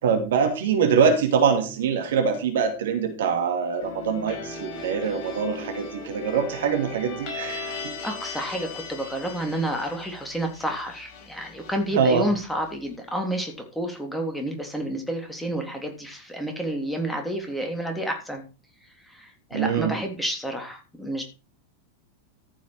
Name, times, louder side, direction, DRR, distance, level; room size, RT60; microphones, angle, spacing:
voice 1, 0.0-7.7 11.9-12.2 19.5-20.0, right 6 dB, 60° right, 5 dB, 2.6 m, -23 dB
sound 1, 3.8-12.7, left 3 dB, 40° left, 5.0 m, -38 dB
voice 2, 8.0-18.4 19.0-21.2, right 1 dB, 5° left, 3 dB, 3.4 m, -30 dB
14.5 x 7.3 x 4.7 m, 0.31 s
figure-of-eight pair, 90°, 0 cm